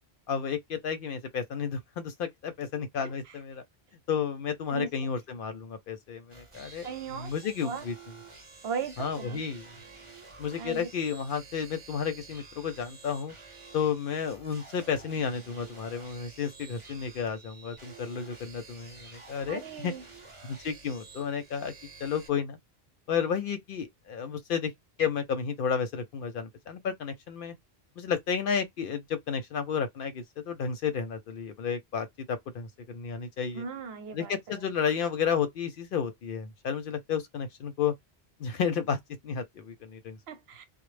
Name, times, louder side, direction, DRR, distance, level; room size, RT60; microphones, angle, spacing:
voice 1, 0.3-3.6 4.1-7.9 9.0-9.7 10.4-13.3 13.7-19.9 20.4-21.7 22.0-22.6 23.1-24.7 25.0-27.5 28.0-33.6 34.1-37.9 38.4-40.2, left 7 dB, 65° left, 0.7 m, -32 dB
voice 2, 3.0-3.4 4.7-4.9 6.8-7.8 8.6-9.4 10.6-10.9 19.5-20.0 33.5-34.7 40.3-40.7, right 6 dB, 80° right, 0.9 m, -38 dB
sound 1, 6.3-22.3, right 4 dB, 35° right, 0.8 m, -50 dB
2.0 x 2.0 x 3.1 m
omnidirectional pair, 1.0 m